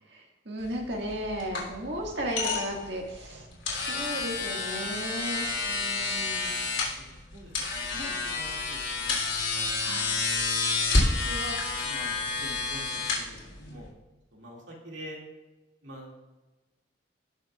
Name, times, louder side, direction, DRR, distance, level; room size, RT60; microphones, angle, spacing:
voice 1, 0.1-3.5 3.9-6.6 9.8-10.1, equal, 60° right, 0 dB, 1.8 m, -35 dB
sound 1, 0.6-13.9, left 3 dB, 75° left, 3.0 m, -30 dB
voice 2, 6.7-9.7 10.2-11.6 11.8-13.4 13.7-13.9 14.3-15.2 15.8-16.2, equal, 75° right, -2 dB, 2.2 m, -46 dB
18.0 x 6.4 x 2.4 m, 1.1 s
head